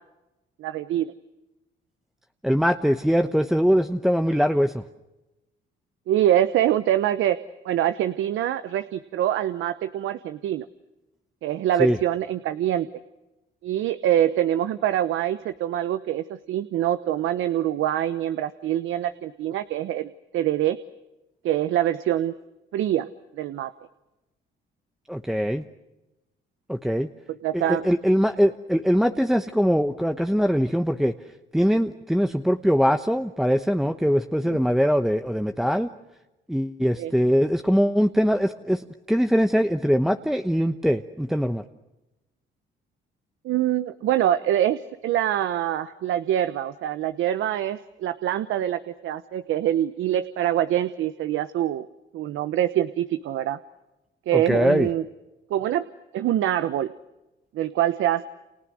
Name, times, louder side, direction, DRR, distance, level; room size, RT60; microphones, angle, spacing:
voice 1, 0.6-1.1 6.1-7.4 7.6-10.6 11.4-12.9 13.6-20.8 21.4-22.3 22.7-23.1 23.3-23.7 27.4-27.8 34.5-34.6 37.0-37.1 43.4-51.9 52.1-53.6 54.3-55.0 55.5-55.8 56.1-56.9 57.5-58.2, right 12 dB, 80° right, 12 dB, 1.0 m, -24 dB
voice 2, 2.4-4.8 11.8-12.0 25.1-25.6 26.7-27.1 27.5-31.1 31.5-35.9 36.5-41.6 54.3-54.9, equal, ahead, 8 dB, 1.0 m, -22 dB
29.5 x 28.5 x 6.3 m, 1.0 s
cardioid pair, 90°, 20 cm